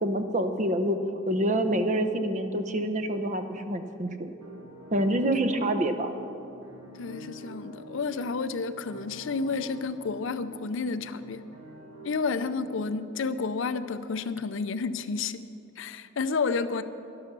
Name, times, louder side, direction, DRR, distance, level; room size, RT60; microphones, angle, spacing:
voice 1, 0.0-4.3 4.9-6.1, right 1 dB, 35° right, 8 dB, 0.8 m, -27 dB
sound 1, 4.4-13.3, right 2 dB, 75° right, 1.7 m, -48 dB
voice 2, 7.0-11.4 12.0-15.5 15.8-16.8, left 4 dB, 70° left, 12 dB, 0.5 m, -30 dB
12.0 x 11.5 x 6.8 m, 2.8 s
head